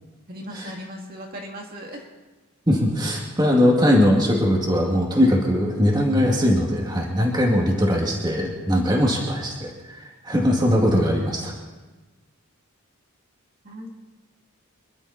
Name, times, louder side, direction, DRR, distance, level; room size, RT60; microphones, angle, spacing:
voice 1, 0.3-2.1 13.6-13.9, equal, 45° right, 0 dB, 2.3 m, -37 dB
voice 2, 2.7-11.5, equal, 20° right, -1 dB, 2.2 m, -20 dB
26.5 x 12.0 x 4.2 m, 1.2 s
head